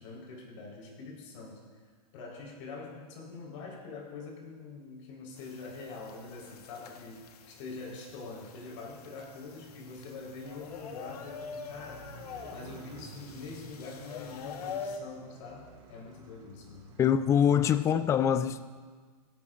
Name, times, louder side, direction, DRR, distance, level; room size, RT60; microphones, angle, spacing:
voice 1, 0.0-1.6 2.1-12.1 12.5-17.0, left 3 dB, 50° left, -2 dB, 4.2 m, -44 dB
sound 1, 5.4-15.0, left 6 dB, 70° left, 1.4 m, -45 dB
Motorcycle, 5.5-18.0, right 3 dB, 25° right, 2.3 m, -54 dB
voice 2, 17.0-18.6, left 8 dB, 15° left, 13 dB, 0.4 m, -24 dB
18.5 x 15.5 x 2.5 m, 1.5 s
hypercardioid pair, 140°, 20 cm